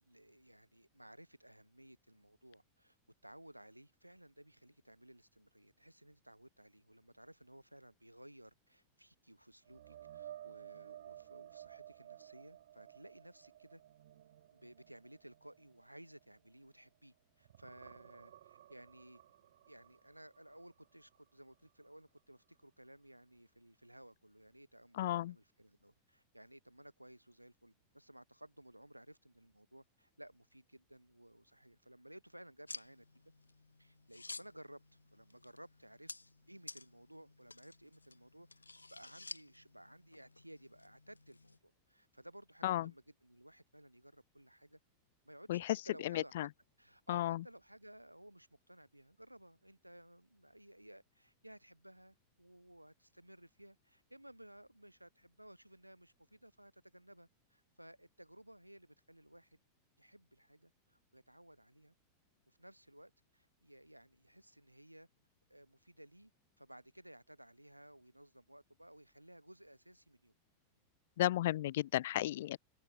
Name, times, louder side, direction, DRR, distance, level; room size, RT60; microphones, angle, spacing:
voice 1, 0.0-3.0 3.2-13.8 14.5-19.2 19.7-33.0 33.8-34.8 35.1-36.1 36.5-44.8 45.2-46.5 46.8-59.6 60.0-61.9 62.5-65.1 65.5-66.3 66.6-70.3, right 1 dB, 90° right, 5.0 m, -58 dB
sound 1, 9.6-17.1 17.4-21.3 21.7-21.9 25.2-25.3, right 12 dB, 60° right, 1.9 m, -56 dB
voice 2, 25.0-25.3 42.6-42.9 45.5-45.6 46.0-46.5 47.1-47.4 71.2-72.6, left 14 dB, 55° left, 0.5 m, -34 dB
sound 2, 32.7-41.6, left 3 dB, 80° left, 2.6 m, -53 dB
open air
figure-of-eight pair, 90°, 0 cm